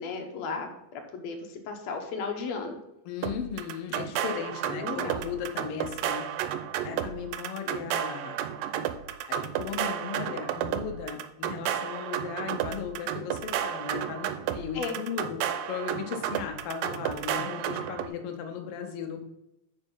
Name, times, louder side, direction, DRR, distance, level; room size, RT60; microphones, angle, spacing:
voice 1, 0.0-1.4 1.7-2.8 4.7-5.2 14.7-15.0, left 4 dB, 65° left, 4 dB, 1.9 m, -34 dB
voice 2, 3.0-6.3 6.8-8.4 9.3-15.4 15.7-19.2, left 7 dB, 90° left, 4 dB, 1.2 m, -36 dB
sound 1, 3.2-18.1, right 10 dB, 90° right, 2.3 m, -32 dB
9.2 x 5.2 x 5.4 m, 0.85 s
omnidirectional pair, 4.0 m